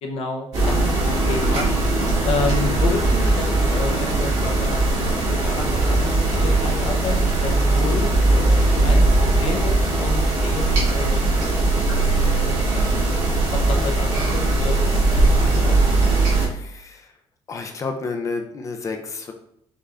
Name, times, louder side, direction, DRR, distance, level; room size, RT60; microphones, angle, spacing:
voice 1, 0.0-0.8 1.3-1.7 2.2-4.8 5.2-9.0 9.4-11.5 11.7-11.8 12.1-12.6 13.5-15.9, left 4 dB, 70° left, 2 dB, 0.7 m, -30 dB
sound 1, 0.5-16.5, right 2 dB, 85° right, 1.7 m, -19 dB
voice 2, 16.4-17.1 17.5-19.3, left 4 dB, 30° left, 5 dB, 0.4 m, -30 dB
5.4 x 2.5 x 3.3 m, 0.73 s
cardioid pair, 175°, 11 cm